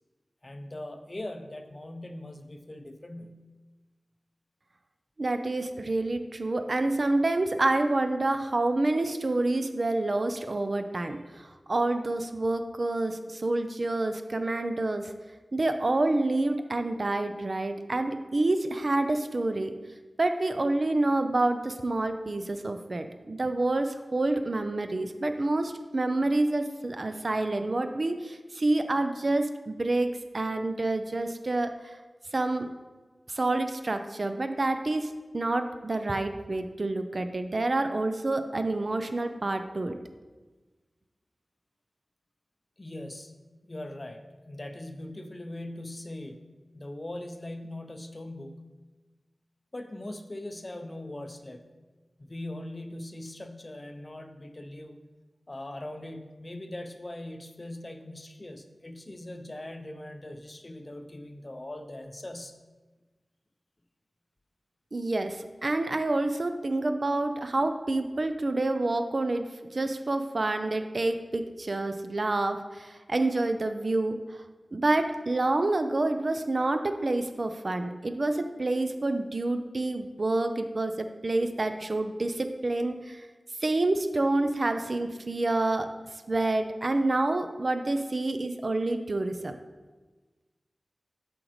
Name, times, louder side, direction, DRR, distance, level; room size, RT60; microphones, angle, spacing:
voice 1, 0.4-3.4 42.8-43.3 43.7-48.7 49.7-51.7 52.2-55.0 55.5-62.5, left 1 dB, 35° left, 7 dB, 0.5 m, -41 dB
voice 2, 5.2-15.1 15.5-19.7 20.2-32.0 32.3-32.7 33.3-40.0 64.9-69.5 69.7-74.2 74.7-83.3 83.6-85.9 86.3-89.6, right 2 dB, 55° right, 7 dB, 0.4 m, -28 dB
7.8 x 5.0 x 3.1 m, 1.3 s
wide cardioid pair, 70°, 0 cm